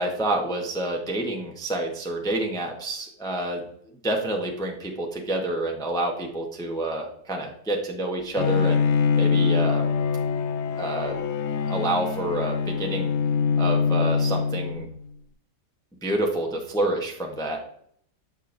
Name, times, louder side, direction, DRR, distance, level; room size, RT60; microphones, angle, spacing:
voice 1, 0.0-3.6 4.0-8.9 9.2-9.9 10.8-11.2 11.7-13.1 13.6-14.9 16.0-17.6, right 1 dB, 5° left, 1 dB, 0.5 m, -28 dB
Bowed string instrument, 8.4-15.0, left 5 dB, 80° left, 0.6 m, -24 dB
8.2 x 5.4 x 2.6 m, 0.65 s
omnidirectional pair, 1.8 m